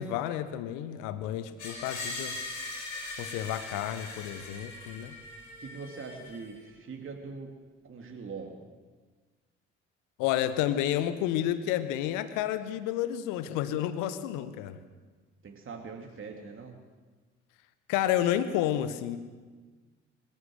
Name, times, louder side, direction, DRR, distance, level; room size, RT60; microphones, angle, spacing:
voice 1, 0.0-2.3 3.2-5.2 10.2-14.8 17.9-19.2, left 11 dB, 60° left, 13 dB, 1.3 m, -30 dB
Screech, 1.6-6.6, left 2 dB, 80° left, 5.5 m, -40 dB
voice 2, 5.6-7.5 7.9-8.5 15.4-16.8, right 5 dB, 35° right, 2 dB, 2.9 m, -42 dB
25.5 x 15.0 x 7.9 m, 1.4 s
figure-of-eight pair, 45°, 35 cm